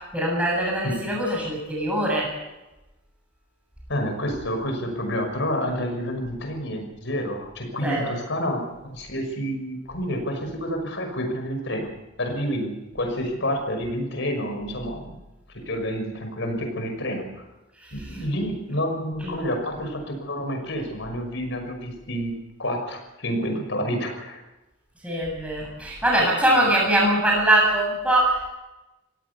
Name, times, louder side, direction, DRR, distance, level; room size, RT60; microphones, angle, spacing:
voice 1, 0.0-2.3 7.8-8.1 17.8-18.2 19.2-19.4 25.0-28.5, right 1 dB, 5° right, -3 dB, 7.8 m, -22 dB
voice 2, 3.9-11.9 12.2-15.1 15.5-17.5 17.9-24.4 26.2-26.3, equal, 65° left, 4 dB, 5.9 m, -29 dB
25.0 x 17.0 x 7.0 m, 1.0 s
head